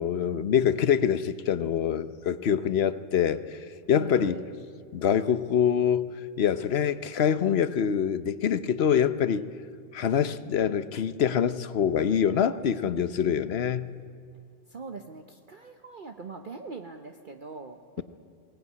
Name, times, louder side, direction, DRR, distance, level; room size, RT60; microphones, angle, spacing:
voice 1, 0.0-3.6 3.9-4.4 4.9-9.4 9.9-14.0, left 8 dB, 60° left, 14 dB, 1.0 m, -25 dB
voice 2, 3.9-4.6 12.8-13.9 14.7-18.0, right 4 dB, 45° right, 5 dB, 1.1 m, -43 dB
22.0 x 18.5 x 9.6 m, 2.2 s
omnidirectional pair, 1.3 m